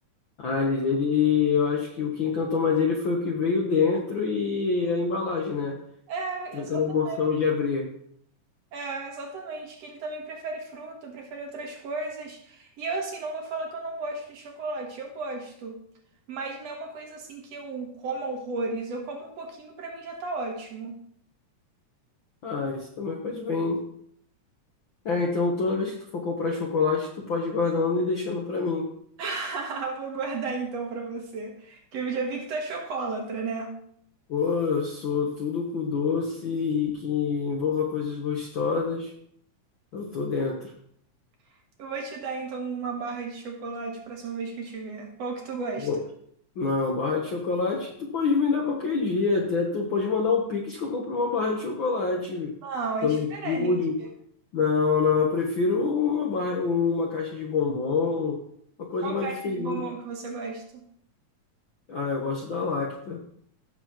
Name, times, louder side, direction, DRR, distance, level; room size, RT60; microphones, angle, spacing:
voice 1, 0.4-5.8 6.5-7.9 22.4-23.8 25.0-28.9 34.3-39.1 39.9-40.7 45.8-46.0 46.6-52.5 53.0-54.0 54.5-58.4 58.8-59.8 61.9-63.2, left 5 dB, 60° left, 0 dB, 1.3 m, -26 dB
voice 2, 6.1-7.2 8.7-15.8 16.3-21.0 29.2-33.7 41.8-45.9 52.6-53.8 54.0-54.1 59.0-60.8, right 3 dB, 60° right, 2 dB, 2.4 m, -34 dB
15.5 x 6.9 x 3.0 m, 0.66 s
omnidirectional pair, 3.5 m